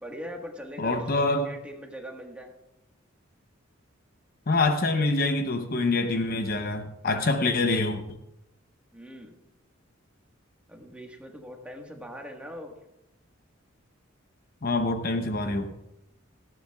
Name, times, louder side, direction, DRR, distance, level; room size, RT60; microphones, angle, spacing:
voice 1, 0.0-2.5 8.9-9.3 10.7-12.7, equal, 5° right, 1 dB, 1.4 m, -41 dB
voice 2, 0.8-1.5 4.5-8.2 14.6-15.7, left 2 dB, 45° left, 7 dB, 0.7 m, -25 dB
18.0 x 14.5 x 2.3 m, 0.87 s
head